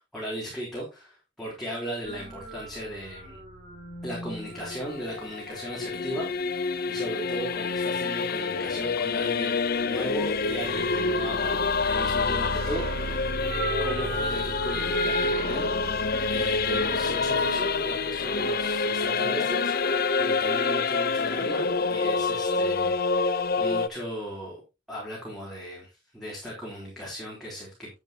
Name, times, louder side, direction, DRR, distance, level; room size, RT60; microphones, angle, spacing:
voice 1, 0.0-3.4 4.0-13.4 13.8-15.7 16.3-19.7 20.2-24.6 24.9-25.9 26.1-27.9, equal, ahead, -6 dB, 3.9 m, -36 dB
sound 1, 2.0-5.6 9.9-19.1, right 1 dB, 40° right, 4.1 m, -36 dB
Singing / Musical instrument, 4.5-23.9, left 4 dB, 50° left, 0.7 m, -27 dB
11.0 x 9.3 x 2.9 m, 0.26 s
head